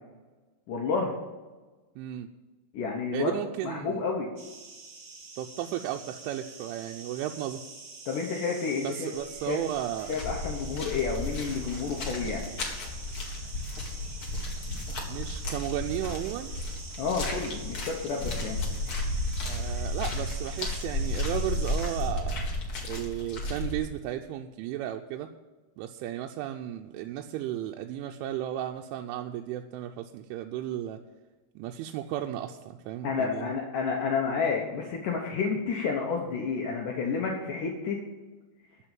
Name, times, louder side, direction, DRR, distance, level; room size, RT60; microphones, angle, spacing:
voice 1, 0.7-1.1 2.7-3.3 3.6-4.3 8.1-9.1 9.4-9.6 10.1-12.5 17.0-18.6 33.0-38.0, left 5 dB, 80° left, 0 dB, 1.9 m, -30 dB
voice 2, 2.0-2.3 3.1-4.0 5.4-7.6 8.8-10.2 15.1-16.6 19.4-22.6 22.8-25.3 25.8-31.0 31.6-33.5, right 12 dB, 90° right, 3 dB, 3.1 m, -34 dB
sound 1, 4.4-22.1, right 4 dB, 60° right, 1.1 m, -46 dB
sound 2, 9.2-9.5 9.7-23.8, left 2 dB, 55° left, 1.5 m, -33 dB
14.0 x 5.5 x 8.9 m, 1.2 s
omnidirectional pair, 5.4 m